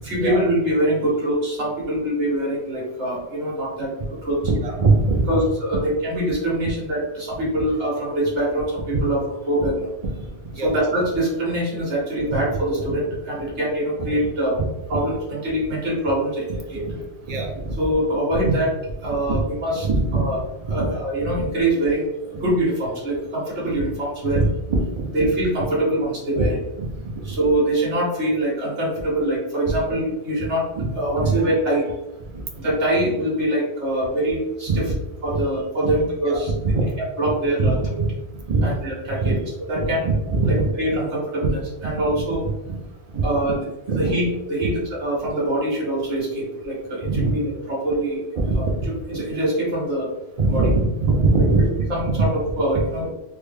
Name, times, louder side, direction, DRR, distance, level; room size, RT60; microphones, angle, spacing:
voice 1, 0.0-3.9 4.2-4.4 5.3-9.2 9.5-9.9 10.5-14.5 14.9-16.9 17.8-18.7 19.0-19.9 20.1-20.4 20.7-24.4 25.1-26.6 27.2-30.6 31.0-31.9 32.5-34.9 35.2-36.5 37.2-38.0 38.6-39.4 39.7-40.0 40.4-42.4 43.2-44.2 44.5-48.2 48.5-48.7 49.1-50.1 50.5-50.7 51.6-53.1, right 1 dB, 90° right, -6 dB, 1.6 m, -24 dB
voice 2, 4.4-5.4 9.6-9.7 10.2-10.3 10.5-10.8 16.8-16.9 17.3-17.8 18.4-18.5 19.2-19.4 19.8-20.2 20.7-20.9 21.2-21.3 24.3-25.1 26.4-26.5 26.8-26.9 29.7-29.8 30.8-30.9 31.2-31.4 32.3-32.4 34.7-34.8 35.3-35.4 35.8-36.0 36.3-36.7 37.6-37.7 38.0-38.7 39.2-39.4 39.7-40.7 41.4-41.5 41.8-42.2 42.7-42.8 43.1-43.5 43.9-44.1 47.0-47.3 48.4-48.7 50.4-51.8, right 3 dB, 45° right, 1 dB, 0.5 m, -22 dB
3.2 x 2.2 x 3.3 m, 0.99 s
omnidirectional pair, 1.1 m